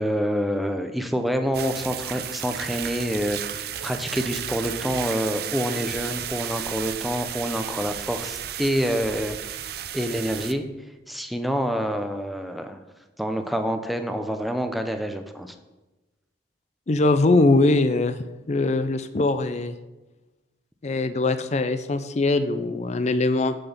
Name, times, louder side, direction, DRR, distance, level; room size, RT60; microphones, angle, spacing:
voice 1, 0.0-9.4 9.9-10.7 11.1-12.8 13.2-15.6, equal, ahead, 6 dB, 0.6 m, -27 dB
sound 1, 1.5-10.5, right 10 dB, 60° right, 0.5 m, -33 dB
voice 2, 16.9-19.7 20.8-23.6, left 2 dB, 40° left, 11 dB, 0.5 m, -22 dB
6.7 x 6.1 x 7.1 m, 1.1 s
head